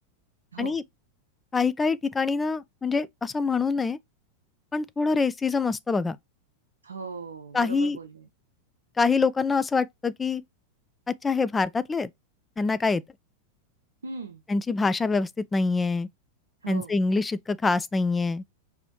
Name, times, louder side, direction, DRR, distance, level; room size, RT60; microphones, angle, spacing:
voice 1, 0.5-0.8 6.8-8.3 14.0-14.4 16.6-16.9, right 4 dB, 70° right, 0.6 m, -38 dB
voice 2, 1.5-4.0 4.7-6.2 7.5-8.0 9.0-10.4 11.1-12.1 12.6-13.0 14.5-16.1 16.7-18.4, left 4 dB, 15° left, 0.3 m, -25 dB
4.9 x 3.4 x 3.0 m
figure-of-eight pair, 90°, 0 cm